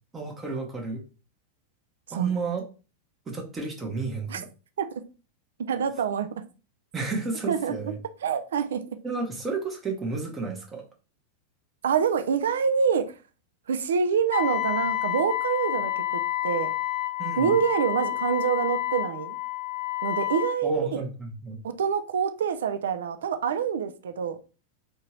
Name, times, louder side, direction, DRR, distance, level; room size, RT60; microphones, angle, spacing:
voice 1, 0.1-1.0 2.1-2.6 3.3-4.5 6.9-8.0 9.0-10.8 17.2-17.5 20.6-21.6, right 4 dB, 20° right, 0.8 m, -32 dB
voice 2, 5.6-6.4 7.5-7.8 8.2-9.0 11.8-13.1 13.7-16.0 16.4-16.7 17.4-19.4 20.0-21.0 21.6-24.5, right 7 dB, 65° right, 0.4 m, -26 dB
Wind instrument woodwind instrument, 14.3-20.6, left 14 dB, 50° left, 0.6 m, -29 dB
3.5 x 2.8 x 2.9 m
figure-of-eight pair, 90°, 0 cm